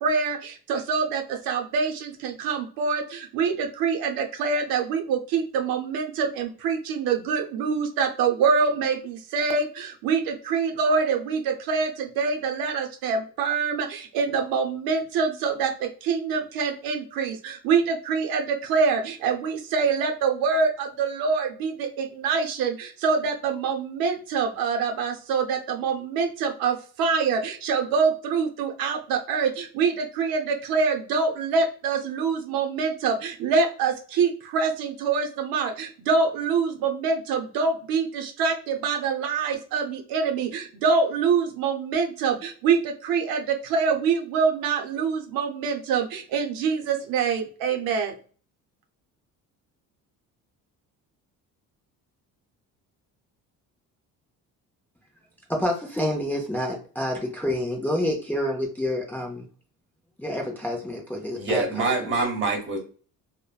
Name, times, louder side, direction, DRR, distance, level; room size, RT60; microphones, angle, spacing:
voice 1, 0.0-48.1, right 5 dB, 90° right, 4 dB, 0.6 m, -25 dB
voice 2, 55.5-59.5 60.2-62.1, left 1 dB, 5° left, -1 dB, 0.5 m, -28 dB
voice 3, 61.3-62.8, right 3 dB, 35° right, 2 dB, 1.1 m, -25 dB
3.1 x 2.1 x 2.3 m, 0.40 s
cardioid pair, 125°, 34 cm